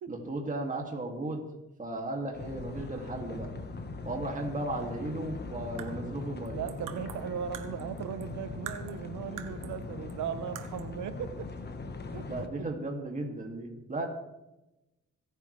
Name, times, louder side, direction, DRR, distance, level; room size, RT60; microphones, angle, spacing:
voice 1, 0.1-3.5 4.0-6.6 12.3-14.1, right 2 dB, 25° right, 1 dB, 2.7 m, -35 dB
sound 1, 2.3-12.5, left 4 dB, 35° left, 1.5 m, -41 dB
sound 2, 5.6-8.3 8.7-9.8 10.1-10.2 10.6-11.0, right 10 dB, 90° right, 1.3 m, -45 dB
voice 2, 6.5-11.5 12.1-12.7, right 8 dB, 75° right, 12 dB, 1.1 m, -38 dB
26.0 x 9.2 x 3.4 m, 0.97 s
cardioid pair, 90°, 30 cm